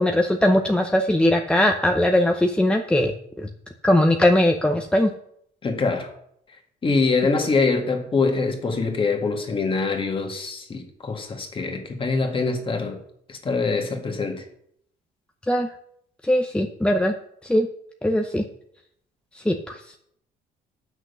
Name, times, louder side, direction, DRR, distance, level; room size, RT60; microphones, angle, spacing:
voice 1, 0.0-3.1 3.4-3.5 3.8-5.1 15.5-15.7 16.2-17.1 17.5-17.7 18.0-18.4 19.5-19.7, left 1 dB, 5° left, 4 dB, 0.7 m, -20 dB
voice 2, 5.6-6.1 6.8-13.0 13.3-14.4, left 4 dB, 30° left, 3 dB, 1.9 m, -24 dB
7.8 x 6.3 x 6.6 m, 0.71 s
cardioid pair, 110°, 17 cm